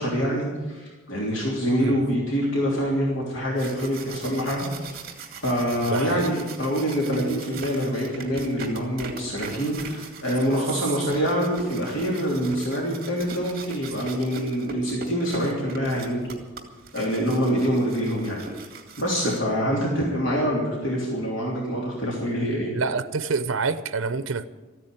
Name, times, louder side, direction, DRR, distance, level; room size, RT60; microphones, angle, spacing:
voice 1, 0.0-5.0 5.4-16.4 16.9-18.4 19.0-22.7, equal, 65° left, 3.3 m, -25 dB
sound 1, 3.6-19.8, right 4 dB, 50° right, 2.1 m, -40 dB
voice 2, 5.9-6.3 22.7-24.5, right 4 dB, 80° right, 0.7 m, -27 dB
14.0 x 9.8 x 9.2 m
head